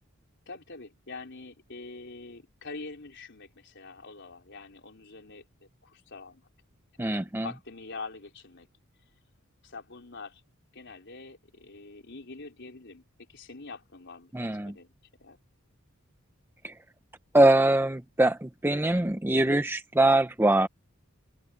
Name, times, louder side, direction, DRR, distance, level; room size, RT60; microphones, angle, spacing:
voice 1, 0.5-6.5 7.0-8.7 9.6-10.4 10.7-13.0 13.3-14.9 15.2-15.4, left 3 dB, 55° left, 4.1 m, -45 dB
voice 2, 7.0-7.5 14.3-14.8 16.6-16.7 17.3-20.7, right 1 dB, 10° right, 0.6 m, -23 dB
open air
head